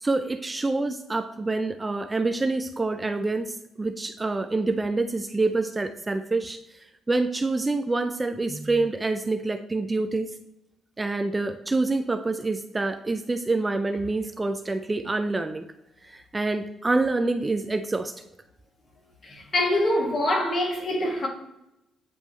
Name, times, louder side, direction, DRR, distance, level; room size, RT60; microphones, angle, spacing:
voice 1, 0.0-6.6 7.1-10.3 11.0-15.6 16.1-18.1, right 3 dB, 20° right, 0.4 m, -26 dB
voice 2, 19.2-21.3, left 1 dB, 45° left, 1.8 m, -24 dB
9.2 x 3.3 x 3.1 m
cardioid pair, 90°, 0 cm